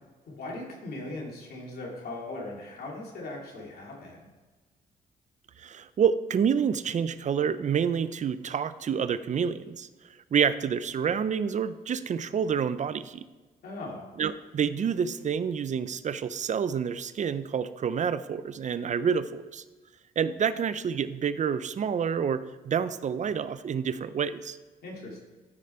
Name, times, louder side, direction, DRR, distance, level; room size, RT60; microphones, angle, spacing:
voice 1, 0.3-4.3 13.6-14.1 24.8-25.2, left 2 dB, 65° left, -2 dB, 2.5 m, -39 dB
voice 2, 5.6-9.9 10.3-13.2 14.2-19.6 20.2-24.6, right 7 dB, 45° right, 14 dB, 0.6 m, -28 dB
13.5 x 5.0 x 4.4 m, 1.3 s
cardioid pair, 75°, 17 cm